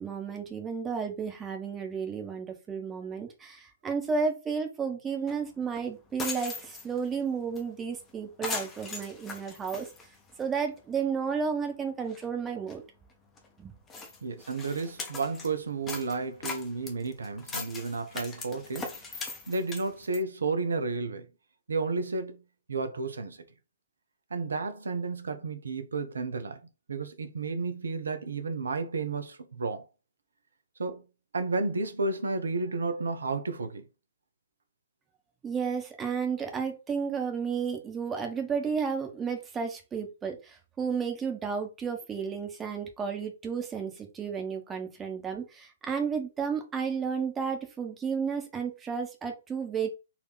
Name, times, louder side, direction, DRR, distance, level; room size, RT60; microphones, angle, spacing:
voice 1, 0.0-9.9 10.4-12.8 13.6-13.7 35.4-49.9, right 6 dB, 15° right, 1.1 m, -32 dB
sound 1, 5.3-5.4 5.7-5.8 6.1-7.1 7.6-7.7 7.9-8.1 8.4-10.6 11.0-11.1 11.6-11.7 12.0-12.2 12.7-12.8 13.4-13.5 13.9-15.5 15.9-20.2, left 4 dB, 20° left, 1.1 m, -39 dB
voice 2, 14.2-18.9 19.5-21.3 21.7-22.4 22.7-23.4 24.3-26.6 26.9-29.9 30.8-31.0 31.3-33.8, right 3 dB, 70° right, 0.8 m, -32 dB
4.3 x 2.8 x 4.0 m
figure-of-eight pair, 120°, 0 cm